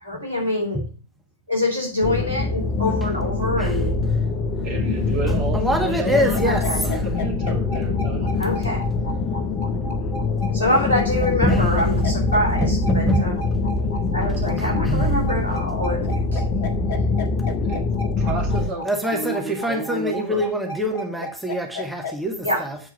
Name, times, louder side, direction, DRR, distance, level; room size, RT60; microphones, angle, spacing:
voice 1, 0.0-0.8 1.5-3.9 6.4-6.8 8.4-8.8 10.5-13.3 14.1-16.4 22.4-22.6, left 1 dB, 75° right, 3.5 m, -25 dB
sound 1, 2.0-18.7, left 3 dB, 35° left, 0.8 m, -24 dB
voice 2, 4.6-6.4 6.8-8.3 10.6-10.8 17.7-17.8 18.2-18.9 19.1-20.5, right 3 dB, 40° right, 2.4 m, -31 dB
voice 3, 5.3-7.1 11.4-11.9 12.6-13.3 14.6-15.1 16.0-16.1 18.8-22.8, equal, 5° right, 1.4 m, -25 dB
sound 2, 6.1-22.2, left 1 dB, 50° left, 1.4 m, -34 dB
8.1 x 4.4 x 6.1 m
figure-of-eight pair, 90°, 0 cm